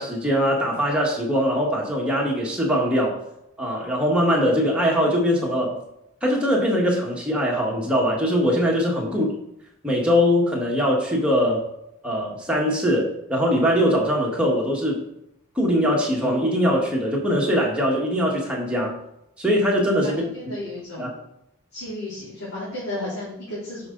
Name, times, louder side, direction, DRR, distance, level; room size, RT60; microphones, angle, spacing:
voice 1, 0.0-3.2 3.6-5.8 6.2-9.3 9.8-11.6 12.0-15.0 15.5-18.9 19.4-20.5 21.0-21.1, equal, 5° right, -3 dB, 1.5 m, -22 dB
voice 2, 20.0-21.2 21.7-23.9, left 1 dB, 85° left, -10 dB, 3.3 m, -34 dB
9.1 x 5.5 x 3.9 m, 0.82 s
head